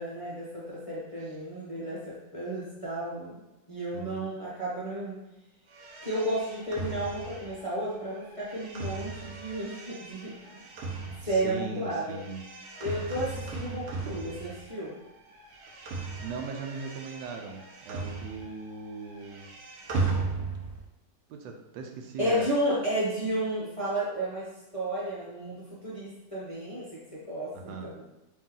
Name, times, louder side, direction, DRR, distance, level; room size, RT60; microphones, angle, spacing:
voice 1, 0.0-3.4 3.7-5.2 6.0-10.6 11.2-12.2 12.8-15.0 22.2-28.0, right 1 dB, 35° left, -8 dB, 0.5 m, -32 dB
voice 2, 3.9-4.3 11.2-12.4 15.7-16.0 16.2-19.5 21.3-22.5 27.5-27.9, right 4 dB, 90° right, 3 dB, 1.3 m, -39 dB
sound 1, 5.7-15.0 15.3-18.7 19.0-20.9, right 4 dB, 70° right, 1.1 m, -37 dB
3.1 x 3.0 x 3.7 m, 0.98 s
omnidirectional pair, 2.0 m